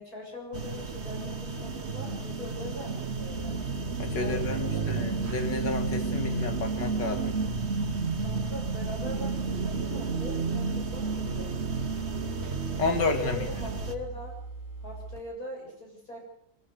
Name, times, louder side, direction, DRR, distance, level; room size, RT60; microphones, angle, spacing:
voice 1, 0.0-3.6 4.1-4.9 8.2-11.6 13.2-14.4 14.8-16.2, left 1 dB, 55° left, -1 dB, 8.1 m, -41 dB
sound 1, 0.5-14.0, right 4 dB, 40° right, 1.8 m, -32 dB
sound 2, 3.3-15.2, right 3 dB, 35° left, 6.9 m, -41 dB
voice 2, 4.0-7.4 12.8-13.4, left 3 dB, 80° left, 6 dB, 3.1 m, -30 dB
24.5 x 14.5 x 8.2 m, 0.70 s
omnidirectional pair, 1.9 m